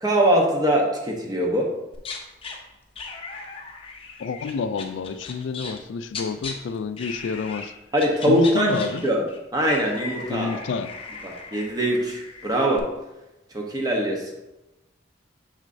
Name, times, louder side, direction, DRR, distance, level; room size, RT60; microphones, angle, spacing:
voice 1, 0.0-1.7 7.9-8.8 9.0-9.2 9.5-10.6 11.2-12.9 13.5-14.3, right 1 dB, 20° right, 0 dB, 0.9 m, -22 dB
sound 1, 1.9-2.6 3.0-6.5 7.0-7.7 8.0-12.8, left 4 dB, 30° left, 0.6 m, -37 dB
voice 2, 4.2-7.7 8.3-9.0 10.3-10.9, left 5 dB, 75° left, 12 dB, 0.3 m, -29 dB
6.5 x 6.0 x 2.6 m, 0.98 s
head